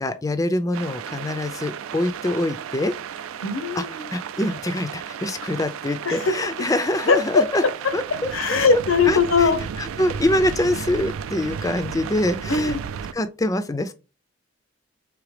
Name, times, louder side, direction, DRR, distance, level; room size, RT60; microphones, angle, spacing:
voice 1, 0.0-2.9 3.8-3.9 4.1-7.6 7.9-8.3 8.7-8.8 9.1-9.5 9.8-12.8 13.1-13.9, left 1 dB, 15° left, 0.3 m, -24 dB
sound 1, 0.7-13.1, right 7 dB, 85° right, 0.4 m, -34 dB
voice 2, 3.4-4.1 6.0-6.3 7.1-7.4 8.3-9.6 12.5-12.8, left 4 dB, 80° left, 0.7 m, -20 dB
4.9 x 3.3 x 3.2 m
head